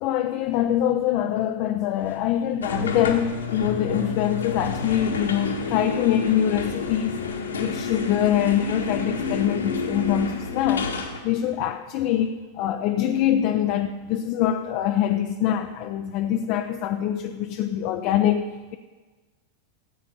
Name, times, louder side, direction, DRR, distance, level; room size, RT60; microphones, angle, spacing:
voice 1, 0.0-7.2 7.6-10.9 11.2-18.8, left 10 dB, 50° left, 5 dB, 0.7 m, -24 dB
sound 1, 2.6-11.2, left 4 dB, 80° left, 1.6 m, -29 dB
14.5 x 8.4 x 5.5 m, 1.3 s
figure-of-eight pair, 95°, 0 cm